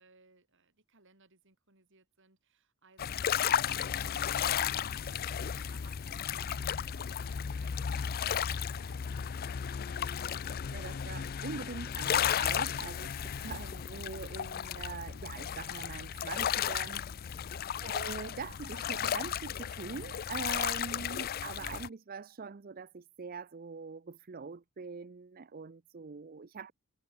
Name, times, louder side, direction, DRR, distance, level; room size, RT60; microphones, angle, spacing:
voice 1, 0.0-9.9 17.2-17.6, right 3 dB, 60° right, 5.4 m, -65 dB
sound 1, 3.0-21.9, left 9 dB, 45° left, 0.4 m, -34 dB
voice 2, 10.7-17.5 17.8-26.7, right 5 dB, 40° right, 0.6 m, -43 dB
head